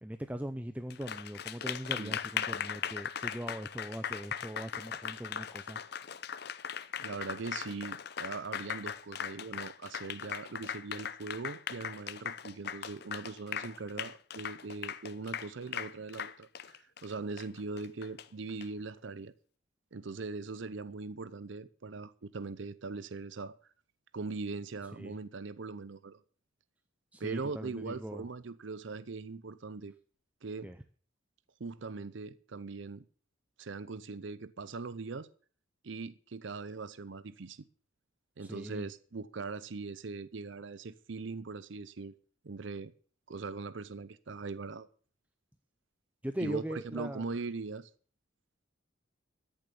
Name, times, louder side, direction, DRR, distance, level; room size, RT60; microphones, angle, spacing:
voice 1, 0.0-5.8 25.0-25.1 27.1-28.3 30.6-30.8 38.4-38.9 46.2-47.2, right 1 dB, 5° right, 0.5 m, -40 dB
Applause, 0.9-18.6, left 8 dB, 50° left, 0.6 m, -39 dB
voice 2, 7.0-19.3 19.9-23.6 24.1-26.2 27.2-29.9 30.4-30.7 31.6-33.0 33.6-35.3 35.8-37.6 38.4-42.1 42.4-42.9 43.3-44.9 46.4-47.9, right 4 dB, 65° right, 0.6 m, -41 dB
13.5 x 7.3 x 6.9 m
head